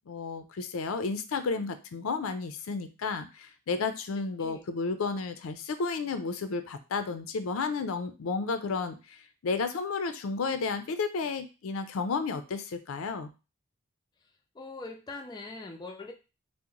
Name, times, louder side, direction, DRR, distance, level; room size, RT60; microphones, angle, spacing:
voice 1, 0.1-13.3, left 4 dB, 85° left, 10 dB, 0.4 m, -32 dB
voice 2, 4.1-4.6 14.5-16.1, left 3 dB, 20° left, 3 dB, 0.3 m, -42 dB
2.9 x 2.0 x 3.7 m, 0.30 s
head